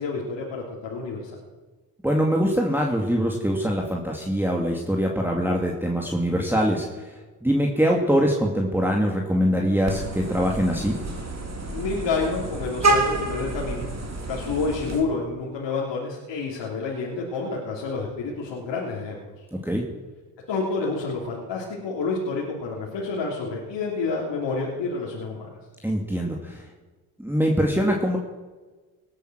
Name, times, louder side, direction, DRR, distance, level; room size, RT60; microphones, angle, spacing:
voice 1, 0.0-1.4 11.7-13.9 14.3-19.2 20.5-25.6, left 4 dB, 65° left, -4 dB, 3.3 m, -29 dB
voice 2, 2.0-7.1 7.4-11.0 19.6-19.8 25.8-26.6 27.2-28.2, equal, 5° right, 0 dB, 2.4 m, -23 dB
Vehicle horn car horn honking, 9.9-15.0, right 2 dB, 35° right, 3.2 m, -28 dB
18.5 x 9.1 x 6.3 m, 1.3 s
supercardioid pair, 60°, 46 cm